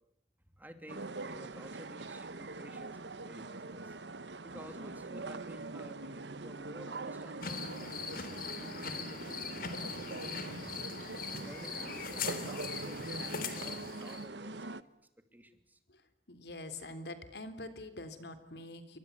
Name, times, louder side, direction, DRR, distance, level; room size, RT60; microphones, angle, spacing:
voice 1, 0.6-4.0 4.4-9.4 9.9-10.5 11.4-14.8 15.3-15.8, equal, 10° right, 7 dB, 2.8 m, -52 dB
sound 1, 0.9-14.8, right 3 dB, 85° right, 1.1 m, -43 dB
sound 2, 7.4-14.2, left 5 dB, 55° left, 3.3 m, -41 dB
voice 2, 16.3-19.0, left 2 dB, 75° left, 10 dB, 3.5 m, -45 dB
29.5 x 24.0 x 8.3 m, 0.78 s
head